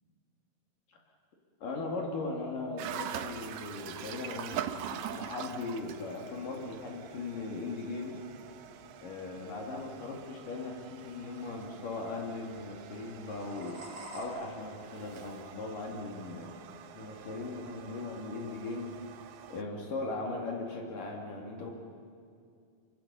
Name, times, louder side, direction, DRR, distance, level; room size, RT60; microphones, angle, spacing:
voice 1, 1.6-8.2 9.0-13.8 14.1-16.6 17.0-19.0 19.5-21.7, left 3 dB, 75° left, 0 dB, 4.2 m, -38 dB
sound 1, 2.8-19.6, right 9 dB, 75° right, 1.4 m, -44 dB
sound 2, 5.7-14.3, right 1 dB, 40° right, 5.5 m, -55 dB
26.5 x 25.5 x 7.2 m, 2.3 s
omnidirectional pair, 3.9 m